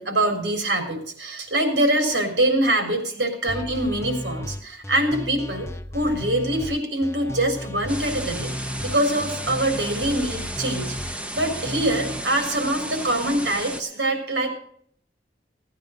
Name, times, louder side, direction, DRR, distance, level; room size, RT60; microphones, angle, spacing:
voice 1, 0.0-5.7 5.9-14.5, right 1 dB, 85° right, 4 dB, 3.7 m, -24 dB
sound 1, 3.5-12.2, left 1 dB, 15° left, 0.6 m, -34 dB
sound 2, 7.9-13.8, right 1 dB, 5° right, 1.1 m, -33 dB
16.0 x 9.6 x 5.1 m, 0.64 s
head